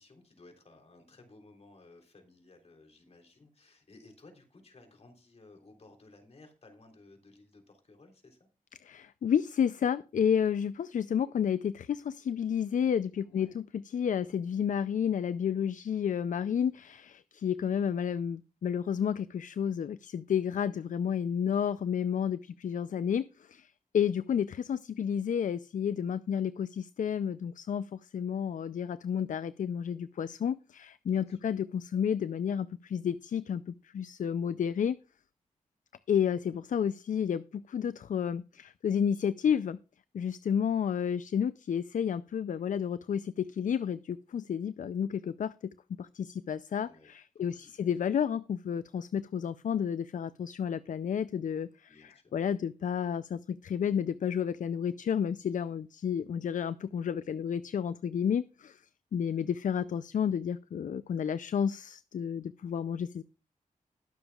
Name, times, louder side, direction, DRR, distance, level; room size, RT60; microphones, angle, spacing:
voice 1, 0.0-8.5 13.2-13.6 21.5-21.8 31.0-31.5 46.8-47.1 47.4-48.0 51.9-52.3, left 2 dB, 50° left, 3 dB, 3.5 m, -57 dB
voice 2, 8.8-35.0 36.1-39.8 40.1-45.5 46.0-58.8 59.1-63.2, left 8 dB, 70° left, 15 dB, 0.4 m, -31 dB
21.0 x 7.0 x 2.3 m, 0.33 s
wide cardioid pair, 110°, 14 cm